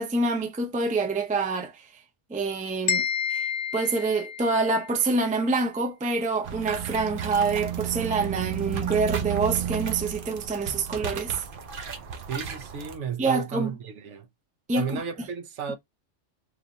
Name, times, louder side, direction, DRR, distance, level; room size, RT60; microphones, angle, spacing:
voice 1, 0.0-1.8 2.3-3.4 3.7-11.5 13.2-13.7 14.7-15.0, right 3 dB, 10° right, 0.4 m, -26 dB
sound 1, 2.9-4.9, left 7 dB, 85° left, 0.9 m, -29 dB
sound 2, 6.4-13.0, right 9 dB, 55° right, 0.7 m, -33 dB
voice 2, 12.3-14.3 14.8-15.8, right 6 dB, 75° right, 1.1 m, -33 dB
3.2 x 2.5 x 3.9 m
omnidirectional pair, 1.3 m